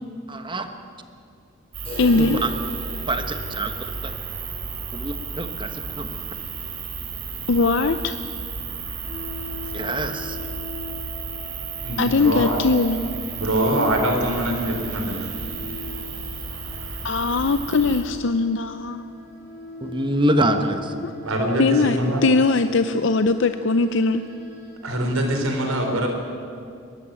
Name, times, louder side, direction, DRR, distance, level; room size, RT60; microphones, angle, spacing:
voice 1, 0.3-0.7 2.2-2.5 3.1-4.1 4.9-6.1 9.7-10.4 19.8-21.1, right 1 dB, 20° right, 7 dB, 1.2 m, -25 dB
sound 1, 1.7-18.0, right 5 dB, 70° right, 3.8 m, -33 dB
sound 2, 1.8-7.7 7.9-8.0 8.4-8.5 9.0-9.1 10.0-10.1, left 2 dB, 25° left, 4.5 m, -41 dB
voice 2, 2.0-2.4 7.5-8.2 12.0-13.0 17.0-19.1 21.6-24.2, left 3 dB, 60° left, 9 dB, 0.6 m, -20 dB
sound 3, 9.0-24.7, left 2 dB, 10° left, 5.5 m, -41 dB
voice 3, 11.8-12.6 13.3-15.3 21.2-22.2 24.8-26.1, right 1 dB, 85° right, 3 dB, 4.1 m, -23 dB
22.5 x 13.5 x 9.0 m, 2.4 s
head